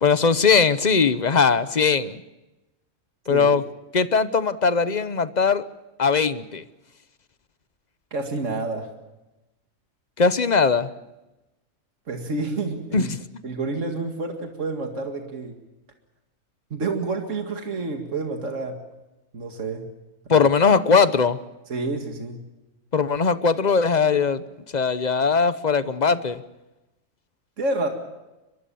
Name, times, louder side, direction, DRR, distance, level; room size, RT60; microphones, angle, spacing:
voice 1, 0.0-2.2 3.3-3.6 3.9-5.6 6.0-6.6 10.2-10.9 12.9-13.2 20.3-21.4 22.9-24.4 24.7-26.4, left 5 dB, 35° left, 13 dB, 0.9 m, -20 dB
voice 2, 8.1-8.9 12.1-13.1 13.4-15.6 16.7-18.8 19.3-19.8 20.3-20.5 21.7-22.4 27.6-27.9, right 3 dB, 70° right, 4 dB, 2.4 m, -29 dB
23.0 x 23.0 x 7.0 m, 0.99 s
omnidirectional pair, 1.4 m